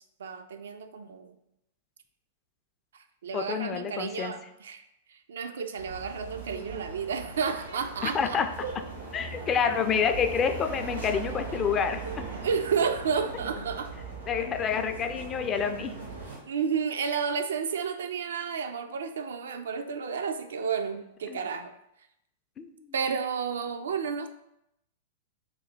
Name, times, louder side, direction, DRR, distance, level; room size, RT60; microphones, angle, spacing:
voice 1, 0.2-1.4 2.9-4.8 5.1-8.4 12.0-12.2 12.4-13.9 14.4-14.5 16.5-21.7 22.9-24.3, right 6 dB, 70° right, 8 dB, 0.3 m, -31 dB
voice 2, 3.3-4.3 8.0-8.5 9.1-12.0 14.3-15.9 21.3-21.4 22.6-22.9, left 6 dB, 25° left, 7 dB, 0.3 m, -28 dB
sound 1, 5.8-16.4, right 3 dB, 90° right, 1.1 m, -39 dB
3.1 x 2.6 x 3.9 m, 0.83 s
figure-of-eight pair, 100°, 0 cm